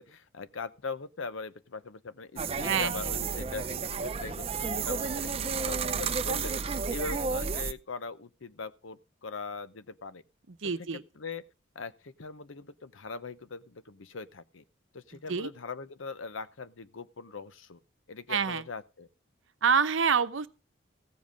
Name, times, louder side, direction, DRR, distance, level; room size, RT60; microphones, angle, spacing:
voice 1, 0.0-6.5 6.9-10.2 10.6-10.7 11.2-11.4 11.7-14.6 14.9-17.8 18.1-19.1, left 4 dB, 80° left, 0.8 m, -41 dB
sound 1, 2.4-7.7, right 5 dB, 30° right, 0.6 m, -32 dB
voice 2, 2.6-3.1 10.6-11.0 15.3-15.5 18.3-18.6 19.6-20.5, right 6 dB, 80° right, 0.8 m, -27 dB
15.5 x 7.5 x 5.1 m
head